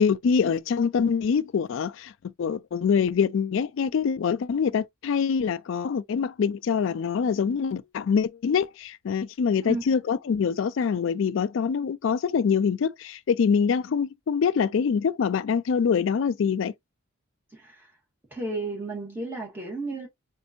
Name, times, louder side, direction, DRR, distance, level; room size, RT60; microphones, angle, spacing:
voice 1, 0.0-2.1 2.4-16.7, left 6 dB, 65° left, 0.3 m, -24 dB
voice 2, 17.5-17.9 18.3-20.1, right 2 dB, 10° right, 1.6 m, -33 dB
4.3 x 2.6 x 2.6 m
head